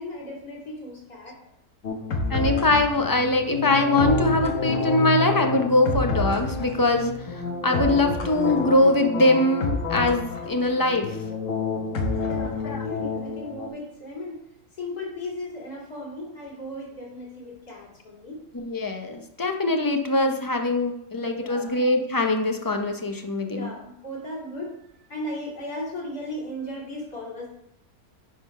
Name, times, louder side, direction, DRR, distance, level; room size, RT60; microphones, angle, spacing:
voice 1, 0.0-1.4 12.3-14.3 14.8-18.4 21.3-21.7 23.5-24.8 25.1-27.5, left 1 dB, 75° left, -4 dB, 3.3 m, -36 dB
sound 1, 1.8-13.7, left 3 dB, 55° left, 1.5 m, -28 dB
voice 2, 2.3-11.2 12.6-12.9 18.5-23.7, left 2 dB, 25° left, 4 dB, 0.4 m, -22 dB
10.5 x 4.0 x 5.3 m, 0.75 s
omnidirectional pair, 1.6 m